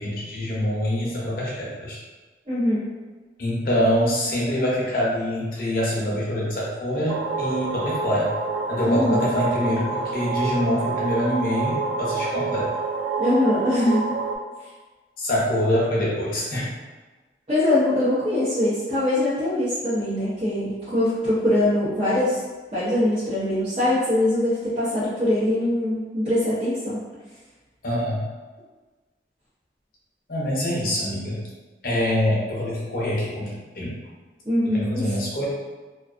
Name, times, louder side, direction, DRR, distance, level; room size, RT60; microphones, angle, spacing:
voice 1, 0.0-2.0 3.4-8.3 8.7-12.7 15.2-16.7 27.8-28.2 30.3-31.4 31.8-33.5 33.8-34.0 34.7-35.5, equal, 50° left, -5 dB, 0.6 m, -25 dB
voice 2, 2.5-2.9 8.8-9.3 13.2-14.0 17.5-22.4 22.7-27.0 34.5-35.2, left 1 dB, 30° right, -14 dB, 0.7 m, -22 dB
sound 1, 7.1-14.4, right 4 dB, 90° right, 0.3 m, -28 dB
2.4 x 2.3 x 2.4 m, 1.3 s
head